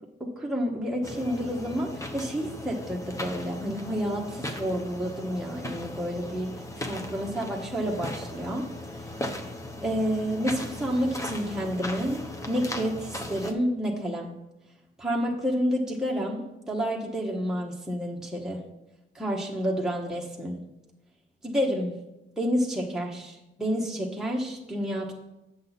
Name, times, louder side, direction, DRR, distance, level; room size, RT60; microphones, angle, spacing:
voice 1, 0.2-6.5 6.8-8.7 8.9-9.1 9.8-14.4 15.0-18.6 19.1-20.6 21.4-21.9 22.4-25.1, equal, 5° right, -3 dB, 1.1 m, -29 dB
sound 1, 1.0-13.5, left 1 dB, 15° left, 0.9 m, -37 dB
7.7 x 6.9 x 4.1 m, 0.94 s
cardioid pair, 90°, 20 cm